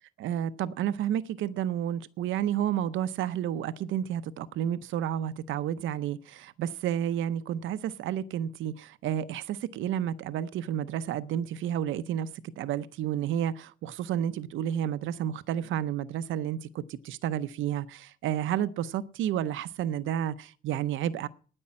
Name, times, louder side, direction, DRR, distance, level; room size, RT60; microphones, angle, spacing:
voice 1, 0.2-12.3 12.6-21.3, right 10 dB, 80° right, 0.6 m, -31 dB
9.8 x 8.5 x 8.5 m
cardioid pair, 90°, 20 cm